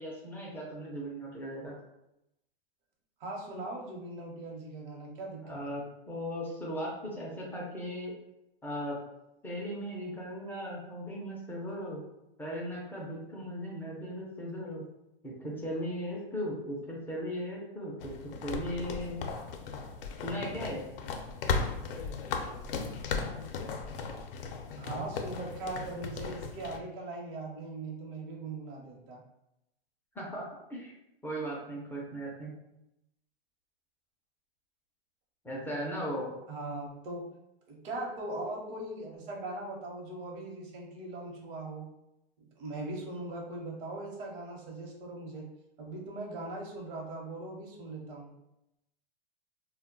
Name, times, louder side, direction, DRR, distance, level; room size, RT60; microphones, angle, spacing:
voice 1, 0.0-1.7 5.4-8.1 8.6-9.0 9.4-12.0 12.4-14.8 15.2-19.2 20.2-20.8 30.2-30.4 30.7-30.9 31.2-32.5 35.4-36.3, equal, 5° left, -4 dB, 0.4 m, -37 dB
voice 2, 3.2-5.7 24.8-29.2 36.5-37.2 37.7-41.9 42.6-45.5 45.8-48.3, right 2 dB, 60° right, -1 dB, 0.9 m, -40 dB
sound 1, 18.0-26.8, left 5 dB, 65° left, 0.5 m, -36 dB
2.2 x 2.1 x 3.7 m, 0.87 s
hypercardioid pair, 130°, 30 cm